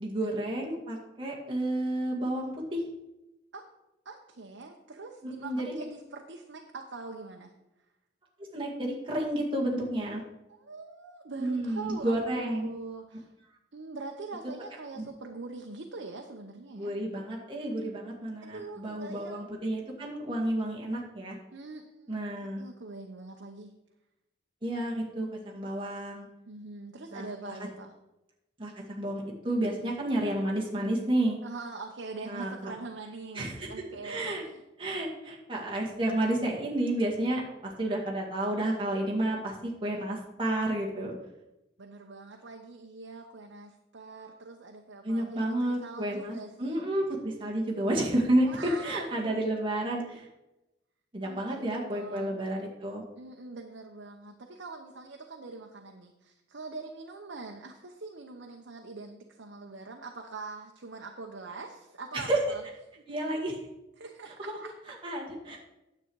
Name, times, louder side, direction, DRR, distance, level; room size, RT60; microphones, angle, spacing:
voice 1, 0.0-2.8 5.2-5.7 8.5-10.2 11.4-12.7 15.0-15.1 16.7-21.4 22.1-22.6 24.6-26.3 27.1-27.6 28.6-28.7 29.0-31.4 32.2-32.7 33.3-33.7 34.0-34.4 34.8-41.1 45.0-50.3 51.1-53.0 62.1-62.4 63.1-63.5 64.5-64.6 64.9-65.6, right 1 dB, 25° right, -3 dB, 2.0 m, -31 dB
voice 2, 4.0-7.5 10.5-13.3 13.7-16.9 18.4-19.4 21.5-23.7 26.5-27.9 31.4-34.6 41.8-46.8 48.4-49.5 51.2-52.4 53.2-63.0 63.4-63.5 64.0-64.7, right 3 dB, 80° right, 2 dB, 0.9 m, -43 dB
9.6 x 7.9 x 4.7 m, 0.95 s
head